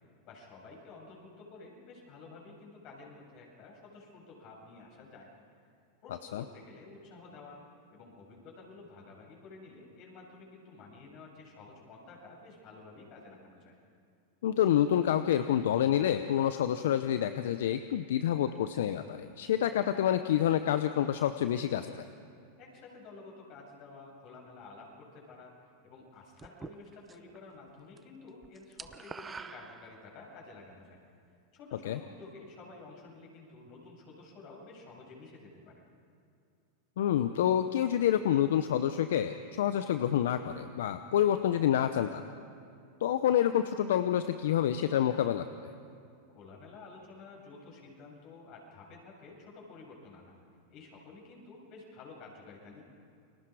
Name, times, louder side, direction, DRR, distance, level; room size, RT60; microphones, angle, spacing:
voice 1, 0.2-5.3 6.0-7.6 7.9-13.8 22.6-31.0 31.5-35.7 46.3-50.3 50.7-52.8, left 3 dB, 50° left, -1 dB, 7.9 m, -51 dB
voice 2, 14.4-22.0 31.8-32.0 37.0-42.3 43.0-45.7, left 10 dB, 75° left, 10 dB, 0.7 m, -28 dB
sound 1, 26.4-27.4 27.7-28.0 28.3-30.4, right 5 dB, 20° right, 0.8 m, -46 dB
29.5 x 22.0 x 4.9 m, 2.4 s
hypercardioid pair, 105°, 0 cm